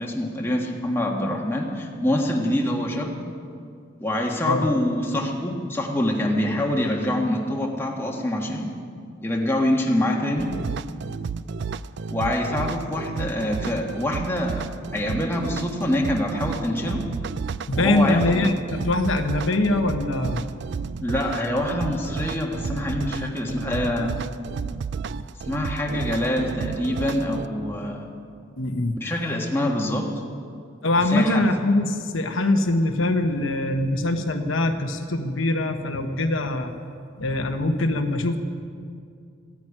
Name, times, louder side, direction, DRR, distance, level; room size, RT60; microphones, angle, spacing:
voice 1, 0.0-3.2 4.0-8.8 9.2-10.5 12.1-14.7 14.9-17.1 17.7-18.5 21.0-24.1 25.4-28.1 29.0-30.1 31.1-31.4, left 1 dB, 10° left, 0 dB, 1.5 m, -25 dB
sound 1, 10.4-27.5, right 5 dB, 55° right, 0.3 m, -32 dB
voice 2, 17.7-20.4 28.6-29.0 30.8-36.7 37.2-38.4, left 2 dB, 75° left, 6 dB, 1.0 m, -23 dB
15.0 x 8.9 x 9.8 m, 2.3 s
head